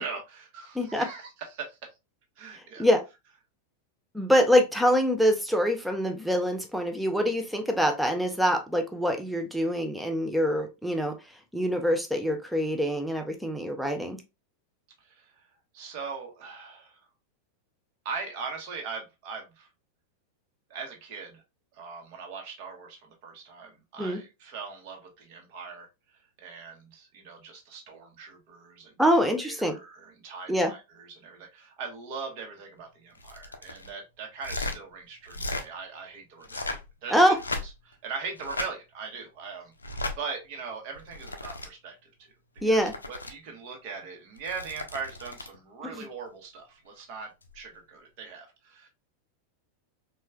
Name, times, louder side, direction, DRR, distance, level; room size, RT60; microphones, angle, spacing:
voice 1, 0.0-1.9 2.4-2.9 15.0-17.1 18.0-19.7 20.7-21.4 21.7-25.9 26.2-37.3 37.8-39.7 40.2-42.3 42.6-48.9, right 5 dB, 45° right, 1.0 m, -40 dB
voice 2, 4.1-11.1 11.5-14.2 24.0-24.2 29.0-29.8 30.5-30.7 37.1-37.4 42.6-42.9, equal, ahead, 0.6 m, -24 dB
sound 1, 33.1-33.9 34.4-34.8 35.3-35.7 36.4-36.9 37.3-37.9 38.4-38.7 39.8-40.2 41.0-41.7 42.6-43.3 44.4-45.6 47.4-47.6, left 2 dB, 80° left, 0.5 m, -36 dB
4.2 x 2.3 x 2.2 m
figure-of-eight pair, 90°, 0 cm